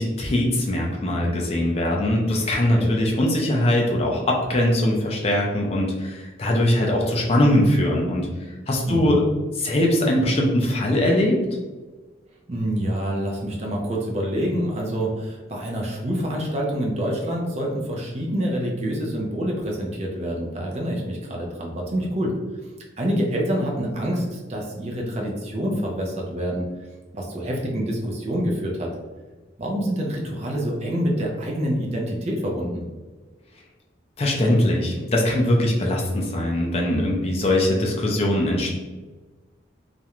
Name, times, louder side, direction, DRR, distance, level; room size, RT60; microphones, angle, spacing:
voice 1, 0.0-8.3 8.7-9.2 9.5-11.4 34.2-38.7, left 1 dB, 30° left, -1 dB, 0.4 m, -21 dB
voice 2, 8.9-9.2 12.5-22.3 23.0-26.6 27.1-28.9 29.6-32.8, equal, 35° right, -1 dB, 0.4 m, -26 dB
2.4 x 2.1 x 2.9 m, 1.3 s
head